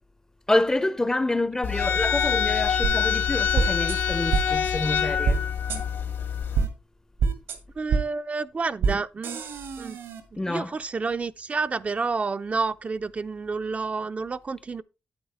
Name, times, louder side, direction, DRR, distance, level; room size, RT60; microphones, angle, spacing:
voice 1, 0.5-5.4 10.4-10.7, left 2 dB, 15° left, 0.6 m, -27 dB
sound 1, 1.6-6.7, left 8 dB, 80° left, 2.4 m, -25 dB
sound 2, 2.8-2.9 3.5-4.0 4.3-4.4 5.2-5.4 5.7-5.8 6.5-6.7 7.2-7.6 7.9-8.0 8.8-8.9 9.2-10.2, right 5 dB, 90° right, 1.8 m, -24 dB
voice 2, 7.8-9.4 9.8-10.0 10.5-14.8, right 4 dB, 35° right, 0.4 m, -29 dB
8.9 x 8.5 x 3.4 m
cardioid pair, 70°, 4 cm